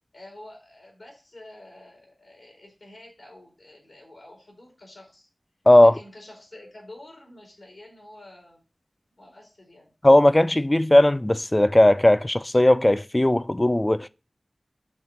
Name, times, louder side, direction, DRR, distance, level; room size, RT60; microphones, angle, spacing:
voice 1, 0.1-5.3 5.8-8.6 9.2-9.9, left 1 dB, 85° left, 2.8 m, -48 dB
voice 2, 10.0-14.1, left 1 dB, 25° left, 0.3 m, -17 dB
5.3 x 3.7 x 5.7 m
wide cardioid pair, 50°, 0 cm